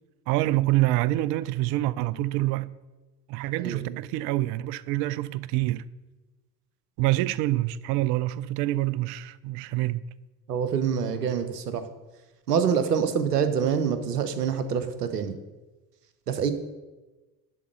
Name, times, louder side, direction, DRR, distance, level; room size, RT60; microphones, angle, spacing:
voice 1, 0.3-2.7 3.3-5.9 7.0-10.0, right 16 dB, 60° right, 0.5 m, -26 dB
voice 2, 3.6-4.0 10.5-11.9 12.5-15.4 16.3-16.5, right 7 dB, 85° right, 0.8 m, -26 dB
11.0 x 4.0 x 7.8 m
figure-of-eight pair, 50°, 47 cm